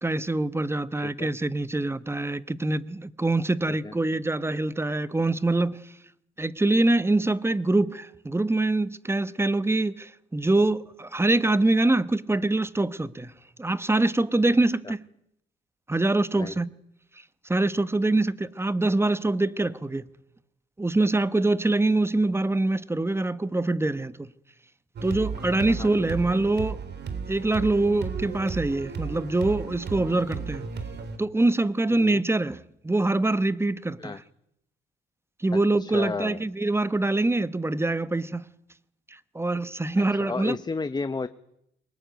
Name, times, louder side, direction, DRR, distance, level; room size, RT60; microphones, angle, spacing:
voice 1, 0.0-5.9 6.4-13.3 13.6-15.0 15.9-16.7 17.4-20.0 20.8-24.3 25.0-26.8 27.3-30.7 31.2-34.2 35.4-38.5 39.1-40.6, right 2 dB, 10° right, 1.0 m, -24 dB
sound 1, 25.0-31.2, right 5 dB, 55° right, 3.4 m, -34 dB
voice 2, 25.7-26.0 31.9-32.2 34.0-34.2 35.8-36.4 40.0-41.3, left 4 dB, 20° left, 0.9 m, -33 dB
23.0 x 19.5 x 9.3 m
cardioid pair, 90°, 20 cm